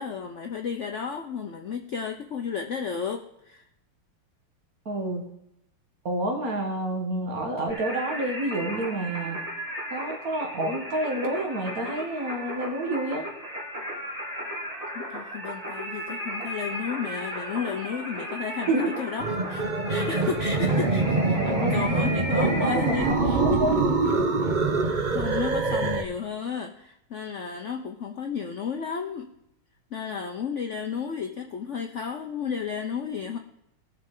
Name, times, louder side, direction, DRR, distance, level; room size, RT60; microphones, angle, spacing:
voice 1, 0.0-3.6 14.9-24.1 24.9-29.3 29.9-33.4, left 6 dB, 80° left, 4 dB, 0.6 m, -33 dB
voice 2, 4.9-5.3 6.1-9.4 9.9-13.3 18.7-18.9 21.3-21.7 22.3-23.0 23.2-23.8, right 1 dB, 45° right, 2 dB, 2.0 m, -28 dB
Singing, 7.7-23.1, equal, 20° right, 1.7 m, -35 dB
sound 1, 19.2-26.0, right 3 dB, 65° right, 0.4 m, -24 dB
18.5 x 6.6 x 3.8 m, 0.79 s
omnidirectional pair, 2.3 m